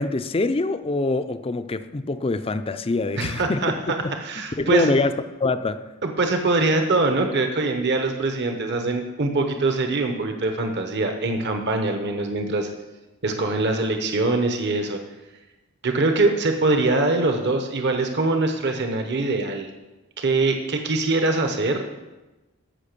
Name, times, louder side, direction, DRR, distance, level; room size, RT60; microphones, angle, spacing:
voice 1, 0.0-3.7 4.0-4.1 4.6-5.9, left 3 dB, 25° left, 0.5 m, -24 dB
voice 2, 3.2-4.9 6.0-12.7 13.2-15.0 15.8-19.7 20.2-21.9, right 2 dB, 50° right, 1.0 m, -23 dB
14.0 x 6.0 x 6.8 m
head